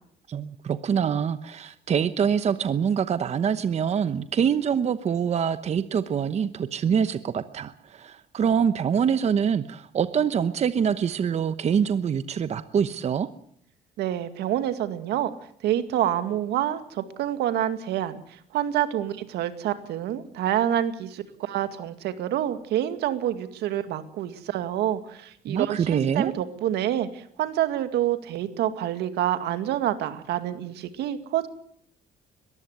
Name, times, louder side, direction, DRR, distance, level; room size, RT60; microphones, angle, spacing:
voice 1, 0.3-13.3 25.5-26.3, right 7 dB, 40° right, 12 dB, 1.0 m, -25 dB
voice 2, 14.0-15.3 15.6-31.5, right 11 dB, 80° right, 10 dB, 2.1 m, -27 dB
22.0 x 15.0 x 8.1 m, 0.68 s
cardioid pair, 110°, 17 cm